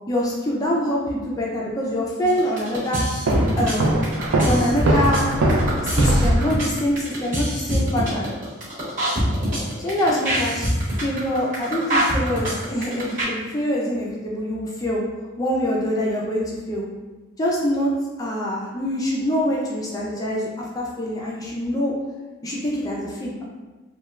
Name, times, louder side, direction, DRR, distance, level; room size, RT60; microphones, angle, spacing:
voice 1, 0.1-3.1 3.6-4.0 4.4-5.3 5.8-8.3 9.8-10.7 11.0-15.0 15.4-16.8 17.4-21.9 22.4-23.4, equal, 20° left, -4 dB, 0.3 m, -25 dB
sound 1, 2.3-13.2, equal, 40° right, 1.0 m, -24 dB
Walk footsteps, 3.3-6.6, right 1 dB, 85° right, 0.4 m, -21 dB
3.1 x 2.1 x 2.3 m, 1.2 s
head